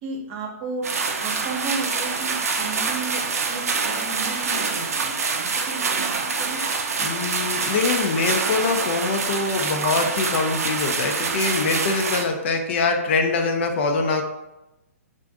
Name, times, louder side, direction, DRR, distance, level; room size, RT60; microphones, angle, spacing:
voice 1, 0.0-3.2 3.5-6.6, right 4 dB, 40° right, 0 dB, 0.7 m, -34 dB
sound 1, 0.8-12.2, right 4 dB, 75° right, 0.4 m, -26 dB
voice 2, 7.0-14.2, left 4 dB, 50° left, 4 dB, 0.4 m, -23 dB
2.5 x 2.5 x 3.4 m, 0.93 s
figure-of-eight pair, 125°, 8 cm